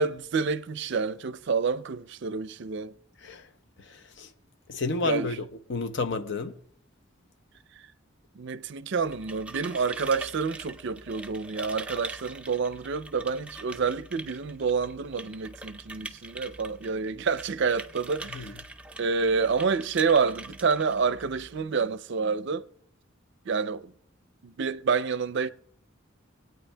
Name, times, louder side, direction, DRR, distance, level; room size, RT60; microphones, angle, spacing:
voice 1, 0.0-2.9 5.0-5.3 8.4-18.6 19.0-22.7 23.5-23.9 24.4-25.5, right 5 dB, 60° right, 0.5 m, -28 dB
voice 2, 3.8-4.3 4.7-6.6 18.3-18.5, left 3 dB, 60° left, 0.7 m, -31 dB
sound 1, 9.0-21.6, right 2 dB, 5° right, 0.4 m, -44 dB
25.5 x 9.1 x 2.2 m
head